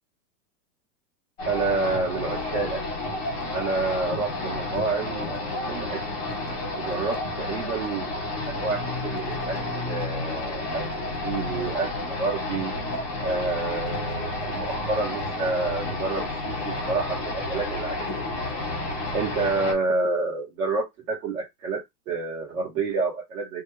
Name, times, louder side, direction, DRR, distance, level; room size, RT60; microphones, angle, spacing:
sound 1, 1.4-19.7, left 2 dB, 5° left, 0.4 m, -31 dB
voice 1, 1.5-2.8 3.5-5.3 5.7-6.0 6.8-8.2 8.5-12.7 13.2-18.4 19.1-23.6, right 3 dB, 55° right, 1.8 m, -29 dB
3.0 x 2.3 x 3.4 m
supercardioid pair, 170°, 48 cm